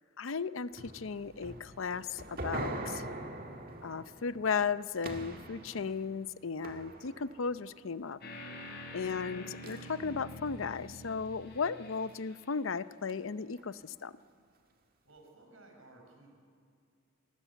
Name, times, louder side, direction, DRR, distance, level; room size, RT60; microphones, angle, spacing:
voice 1, 0.2-3.0 3.8-8.2 8.9-14.1, left 5 dB, 80° left, 15 dB, 0.6 m, -35 dB
sound 1, 0.8-7.7 9.6-10.7 11.3-11.5 11.9-12.0 13.1-13.2 13.6-13.7, right 2 dB, 45° right, 2.0 m, -43 dB
sound 2, 8.2-12.5, left 1 dB, 50° left, 4.1 m, -46 dB
voice 2, 15.0-16.4, right 2 dB, 80° right, 2 dB, 5.1 m, -57 dB
27.5 x 19.5 x 8.2 m, 2.2 s
head